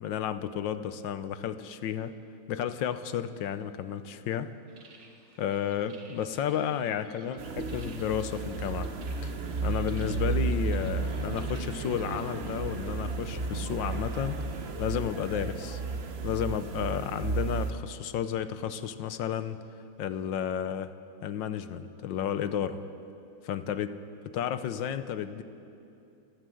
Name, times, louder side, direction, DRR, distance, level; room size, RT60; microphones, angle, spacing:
voice 1, 0.0-2.1 2.5-4.5 5.4-8.9 9.2-9.3 9.6-14.4 14.8-15.8 16.2-19.6 20.0-20.9 21.2-22.8 23.4-24.0 24.2-25.4, left 9 dB, 80° left, 12 dB, 1.5 m, -32 dB
sound 1, 4.7-12.5, right 3 dB, 70° right, 2.5 m, -56 dB
sound 2, 7.4-17.7, right 4 dB, 45° right, 1.0 m, -33 dB
29.5 x 11.5 x 7.7 m, 2.7 s
omnidirectional pair, 2.0 m